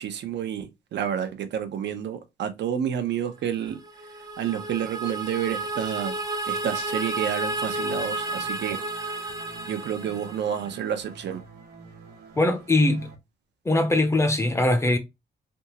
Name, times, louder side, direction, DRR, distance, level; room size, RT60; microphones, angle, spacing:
voice 1, 0.0-3.8 4.4-6.2 6.5-8.8 9.7-11.4, right 9 dB, 80° right, 0.7 m, -29 dB
sound 1, 3.7-10.9, right 2 dB, 20° right, 0.7 m, -32 dB
sound 2, 7.6-13.1, right 4 dB, 60° right, 1.2 m, -48 dB
voice 2, 12.4-13.1 13.6-15.0, left 2 dB, 15° left, 0.6 m, -21 dB
3.5 x 2.8 x 2.8 m
wide cardioid pair, 135°, 18 cm